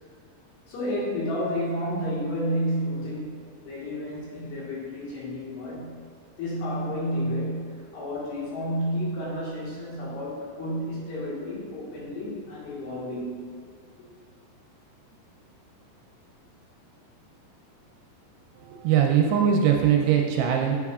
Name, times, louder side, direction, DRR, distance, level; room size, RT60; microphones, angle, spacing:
voice 1, 0.7-6.0 6.4-13.6, equal, 70° left, -6 dB, 3.5 m, -31 dB
voice 2, 18.6-20.8, right 8 dB, 80° right, 1 dB, 2.5 m, -21 dB
8.0 x 7.5 x 2.4 m, 2.2 s
omnidirectional pair, 5.0 m